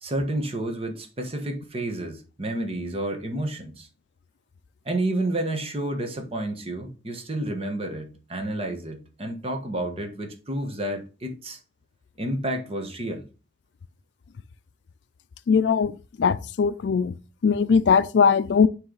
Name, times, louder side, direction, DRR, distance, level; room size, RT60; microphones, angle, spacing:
voice 1, 0.0-3.9 4.8-11.6 12.2-13.3, right 1 dB, 35° right, 1.2 m, -30 dB
voice 2, 15.5-15.9 16.2-17.1 17.4-18.7, left 6 dB, 85° left, 0.4 m, -20 dB
9.5 x 3.3 x 3.9 m
head